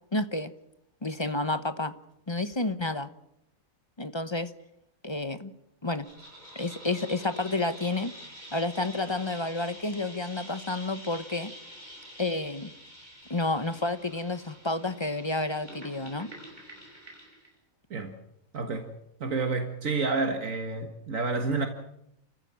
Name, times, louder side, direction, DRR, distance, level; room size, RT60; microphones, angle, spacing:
voice 1, 0.1-0.5 1.0-1.9 2.3-3.1 4.0-4.5 5.0-5.5 5.8-6.1 6.5-8.1 8.5-11.5 12.2-12.7 13.3-16.3, left 2 dB, 25° left, 0.9 m, -30 dB
sound 1, 6.0-17.5, equal, 30° right, 6.5 m, -47 dB
voice 2, 18.5-18.9 19.2-21.7, right 3 dB, 75° right, 2.0 m, -29 dB
29.5 x 15.0 x 7.5 m
omnidirectional pair, 1.4 m